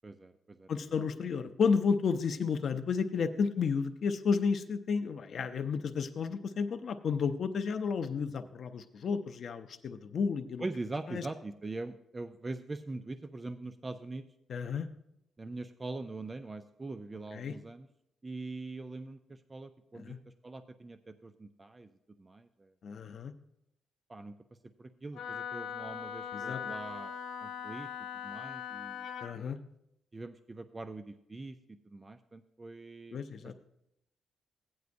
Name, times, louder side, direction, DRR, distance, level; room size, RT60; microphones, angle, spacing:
voice 1, 0.0-0.7 10.6-14.2 15.4-17.9 18.2-20.2 20.4-21.9 22.2-22.7 24.1-24.3 24.8-27.1 27.4-27.9 28.2-29.1 30.1-33.5, right 2 dB, 15° right, 9 dB, 0.3 m, -42 dB
voice 2, 0.7-10.6 11.1-11.3 14.5-14.9 17.3-17.5 19.9-20.2 22.8-23.3 26.3-26.6 29.2-29.6 33.1-33.5, left 5 dB, 45° left, 7 dB, 0.5 m, -32 dB
Wind instrument woodwind instrument, 25.1-29.3, left 7 dB, 85° left, 1.2 m, -40 dB
16.0 x 9.4 x 2.6 m, 0.80 s
cardioid pair, 175°, 0 cm